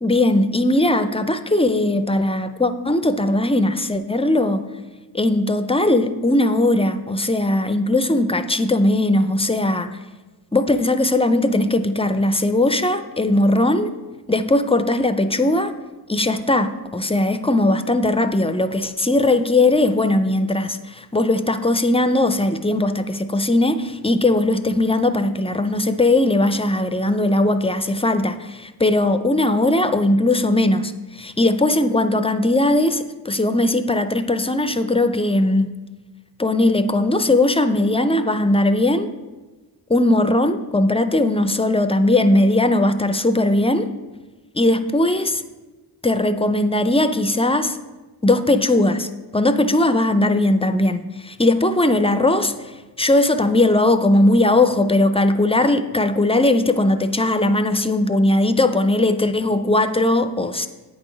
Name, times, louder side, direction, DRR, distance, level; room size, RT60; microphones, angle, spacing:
voice 1, 0.0-4.6 5.1-9.9 10.5-13.9 14.3-15.7 16.1-35.7 36.4-39.1 39.9-43.9 44.5-45.4 46.0-47.8 48.2-60.7, left 1 dB, 15° left, 10 dB, 0.3 m, -19 dB
8.6 x 3.7 x 5.1 m, 1.2 s
wide cardioid pair, 50°, 42 cm